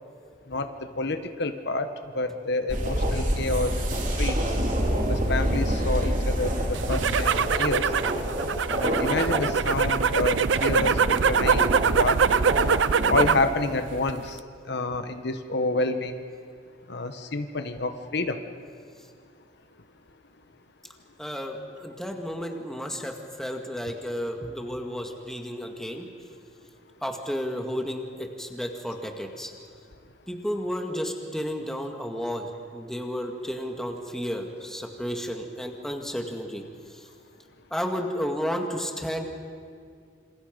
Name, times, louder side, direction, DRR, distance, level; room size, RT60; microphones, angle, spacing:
voice 1, 0.5-4.4 5.1-7.9 8.7-11.0 11.3-12.4 13.1-14.4 14.7-16.2 16.9-18.4, left 2 dB, 60° left, 8 dB, 1.2 m, -29 dB
sound 1, 2.7-13.5, equal, 40° right, 3.2 m, -27 dB
sound 2, 6.7-13.5 13.8-14.4, right 6 dB, 70° right, 0.5 m, -24 dB
voice 2, 21.2-26.1 27.0-29.5 30.3-36.6 36.9-37.1 37.7-39.3, equal, ahead, 3 dB, 1.9 m, -32 dB
27.5 x 27.0 x 5.2 m, 2.2 s
head